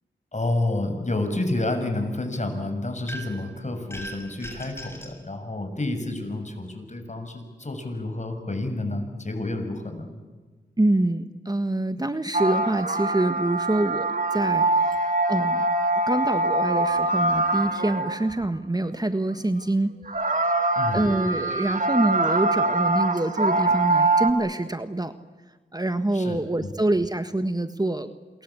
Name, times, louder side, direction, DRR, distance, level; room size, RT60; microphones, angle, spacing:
voice 1, 0.3-10.1 20.7-21.1 26.1-26.7, left 2 dB, 40° left, 6 dB, 6.7 m, -29 dB
sound 1, 3.1-3.5 3.9-5.2, equal, 15° left, 7.1 m, -39 dB
voice 2, 10.8-15.7 16.1-19.9 20.9-25.1 25.7-28.1, right 2 dB, 20° right, 10 dB, 1.4 m, -25 dB
sound 2, 12.3-18.3 20.1-24.3, right 2 dB, 40° right, 3.0 m, -23 dB
27.5 x 22.5 x 8.6 m, 1.4 s
cardioid pair, 40°, 19 cm